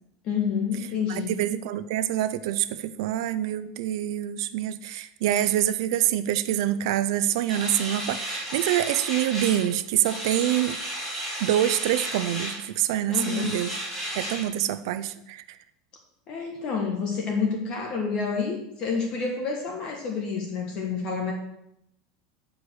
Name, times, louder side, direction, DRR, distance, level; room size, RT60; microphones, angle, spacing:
voice 1, 0.2-1.3 4.9-5.0 13.1-13.6 16.3-21.3, left 5 dB, 35° left, 1 dB, 1.2 m, -28 dB
voice 2, 1.1-10.8 11.4-13.7 14.1-15.6, right 12 dB, 65° right, 13 dB, 0.5 m, -26 dB
sound 1, 7.5-9.7 10.0-12.6 13.1-14.4, right 1 dB, 5° left, 2.5 m, -33 dB
9.5 x 5.0 x 6.1 m, 0.81 s
supercardioid pair, 170°, 3 cm